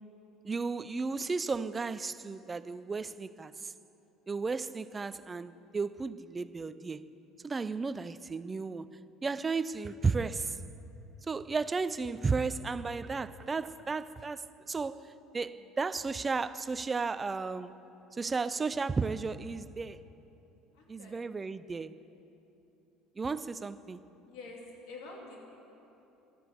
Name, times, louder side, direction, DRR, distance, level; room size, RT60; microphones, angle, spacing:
voice 1, 0.4-3.7 4.3-7.1 7.4-8.9 9.2-10.6 11.3-17.8 18.1-20.0 20.9-22.0 23.2-24.0, right 4 dB, 15° right, 0.3 m, -34 dB
voice 2, 20.7-21.5 24.3-25.4, left 3 dB, 70° left, 2.8 m, -48 dB
13.0 x 10.0 x 8.3 m
cardioid pair, 155°, 0 cm